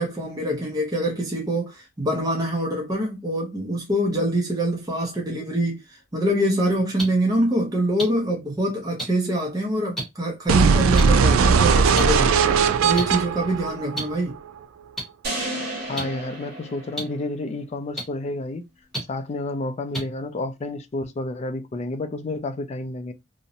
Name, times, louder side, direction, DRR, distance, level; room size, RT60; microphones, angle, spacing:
voice 1, 0.0-5.8 6.1-12.4 12.8-14.4, right 1 dB, 20° right, 0.6 m, -24 dB
sound 1, 7.0-7.1 8.0-8.1 9.0-9.1 10.0-10.1 11.0-11.1 12.0-12.1 12.9-13.0 13.9-14.0 15.0-15.1 15.9-16.0 17.0-17.1 18.0-18.1 18.9-19.0 19.9-20.0, right 1 dB, ahead, 1.0 m, -28 dB
sound 2, 10.5-14.5, right 5 dB, 80° right, 0.3 m, -19 dB
sound 3, 15.2-17.5, right 1 dB, 50° right, 1.1 m, -32 dB
voice 2, 15.9-18.6 19.1-23.1, left 2 dB, 30° left, 0.3 m, -30 dB
2.6 x 2.0 x 2.7 m
head